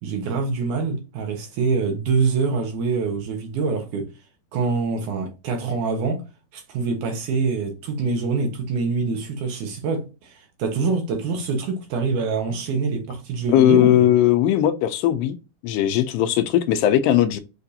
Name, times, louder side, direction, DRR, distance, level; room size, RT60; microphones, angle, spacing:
voice 1, 0.0-4.1 4.5-6.2 6.5-14.1, right 4 dB, 75° right, 2.0 m, -25 dB
voice 2, 13.5-15.4 15.6-17.4, left 11 dB, 80° left, 2.3 m, -18 dB
6.7 x 2.5 x 2.7 m
omnidirectional pair, 4.1 m